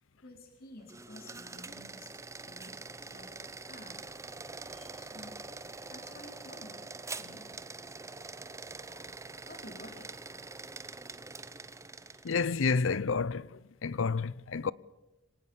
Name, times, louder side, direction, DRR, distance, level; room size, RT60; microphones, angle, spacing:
voice 1, 0.2-4.0 4.9-5.4 5.8-6.8 7.2-7.5 9.5-10.1 14.6-14.7, left 1 dB, 50° left, 3.8 m, -52 dB
sound 1, 0.8-12.6, right 3 dB, 15° right, 0.9 m, -45 dB
voice 2, 12.2-13.5 13.8-14.7, left 4 dB, 75° left, 0.6 m, -29 dB
25.0 x 18.5 x 7.0 m
head